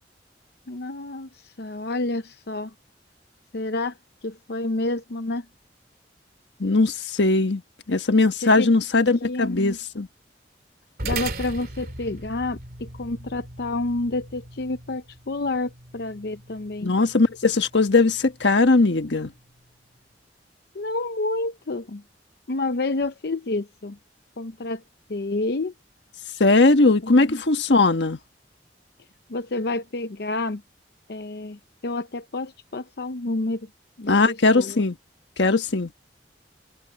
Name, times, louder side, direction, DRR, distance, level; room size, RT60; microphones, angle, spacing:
voice 1, 0.7-2.7 3.5-5.5 8.4-8.7 9.2-9.8 11.0-17.0 20.7-22.0 22.5-24.0 24.4-24.8 25.1-25.7 27.0-27.4 29.3-30.6 31.1-33.7 34.0-34.8, left 2 dB, 65° left, 0.7 m, -29 dB
voice 2, 6.6-7.6 7.9-10.1 16.8-19.3 26.4-28.2 34.1-35.0 35.4-35.9, left 3 dB, 85° left, 1.4 m, -19 dB
sound 1, 11.0-19.7, right 3 dB, 60° right, 2.5 m, -39 dB
head